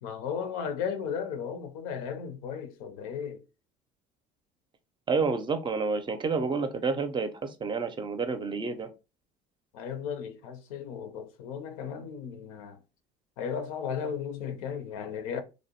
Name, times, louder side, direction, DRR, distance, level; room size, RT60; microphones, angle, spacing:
voice 1, 0.0-3.4 9.7-12.8 13.4-15.4, left 7 dB, 85° left, 0.5 m, -35 dB
voice 2, 5.1-8.9, right 4 dB, 25° right, 0.5 m, -29 dB
2.6 x 2.1 x 2.8 m
supercardioid pair, 85°, 17 cm